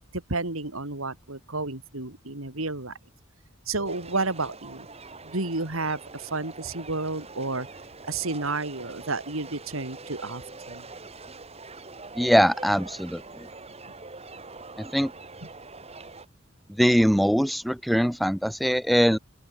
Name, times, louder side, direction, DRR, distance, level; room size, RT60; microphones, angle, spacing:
voice 1, 0.1-2.9 3.7-4.9 5.2-7.7 8.1-10.4 10.7-10.8, right 3 dB, 90° right, 3.4 m, -31 dB
sound 1, 3.9-16.3, right 3 dB, 30° right, 4.0 m, -44 dB
voice 2, 12.2-13.5 14.8-15.1 16.7-19.2, equal, ahead, 0.5 m, -22 dB
open air
head